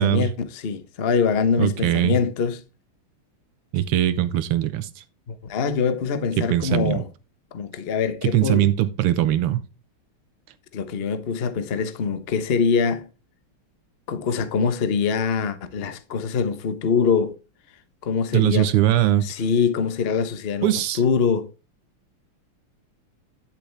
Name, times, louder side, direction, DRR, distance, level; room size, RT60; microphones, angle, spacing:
voice 1, 0.0-2.6 5.3-7.1 7.5-8.7 10.7-13.0 14.1-17.4 18.0-18.7 19.2-20.7 21.0-21.5, left 5 dB, 45° left, 0.8 m, -23 dB
voice 2, 1.6-2.2 3.7-5.0 6.4-7.0 8.2-9.7 18.3-19.3 20.6-21.0, right 13 dB, 85° right, 1.8 m, -21 dB
10.5 x 7.3 x 3.3 m
omnidirectional pair, 2.4 m